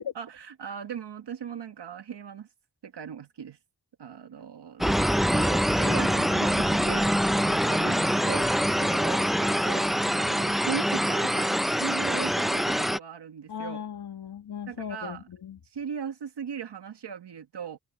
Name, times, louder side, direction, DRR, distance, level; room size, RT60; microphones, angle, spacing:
voice 1, 0.1-2.5 2.8-3.6 4.0-13.8 14.7-15.3 15.7-17.8, right 7 dB, 80° right, 1.6 m, -38 dB
sound 1, 4.8-13.0, equal, ahead, 0.5 m, -24 dB
sound 2, 6.3-9.0, left 2 dB, 15° left, 5.0 m, -45 dB
voice 2, 13.5-15.6, left 8 dB, 75° left, 2.4 m, -38 dB
wide cardioid pair, 90°, 41 cm